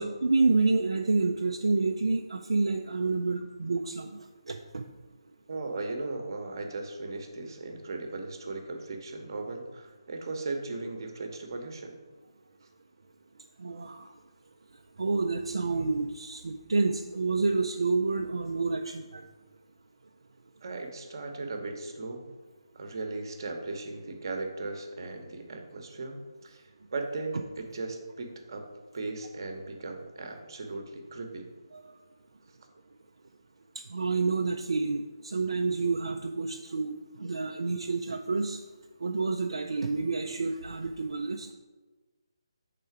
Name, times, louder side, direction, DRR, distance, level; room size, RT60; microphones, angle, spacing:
voice 1, 0.0-4.1 4.5-4.8 13.6-14.0 15.0-19.2 33.9-36.9 37.2-38.6 39.0-41.5, right 3 dB, 70° right, 3 dB, 0.4 m, -28 dB
voice 2, 5.5-12.0 20.6-22.3 22.7-28.7 28.9-31.5, right 3 dB, 50° right, 4 dB, 0.9 m, -37 dB
5.5 x 3.8 x 4.6 m, 1.3 s
figure-of-eight pair, 150°, 3 cm